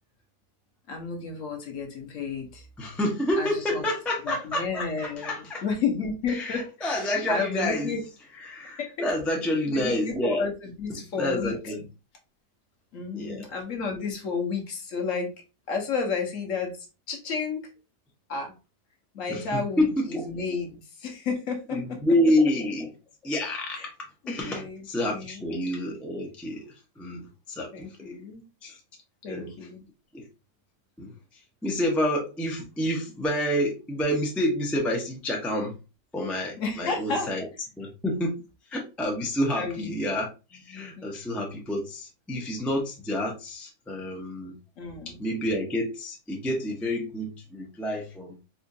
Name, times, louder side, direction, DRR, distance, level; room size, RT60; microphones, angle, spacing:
voice 1, 0.9-2.7 3.4-3.8 4.2-8.0 8.8-8.9 9.7-11.7 12.9-15.3 15.7-17.6 18.3-18.5 19.1-22.0 23.7-23.9 24.2-25.5 27.7-28.4 29.2-29.8 36.6-37.3 39.6-40.0 41.0-41.1 44.8-45.2, left 4 dB, 60° left, 2 dB, 1.2 m, -32 dB
voice 2, 2.8-5.6 6.3-7.9 8.4-10.4 11.1-11.8 13.1-13.5 19.3-20.2 21.7-22.9 23.2-23.9 24.3-27.9 28.6-28.8 29.3-29.5 30.1-30.3 31.0-31.1 31.6-35.7 36.1-37.5 37.8-38.4 38.7-44.6 45.2-48.4, left 1 dB, ahead, -1 dB, 0.4 m, -28 dB
4.3 x 2.4 x 2.7 m, 0.29 s
omnidirectional pair, 1.7 m